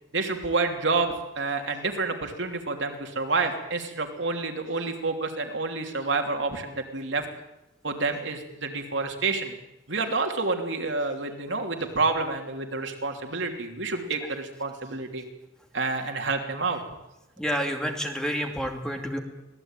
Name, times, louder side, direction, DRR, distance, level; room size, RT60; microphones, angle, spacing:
voice 1, 0.1-7.3 7.8-9.5 9.9-15.2 15.7-16.8, right 3 dB, 65° right, 4 dB, 3.0 m, -28 dB
voice 2, 17.4-19.2, equal, 5° left, 3 dB, 2.6 m, -29 dB
25.0 x 18.0 x 9.1 m, 0.93 s
head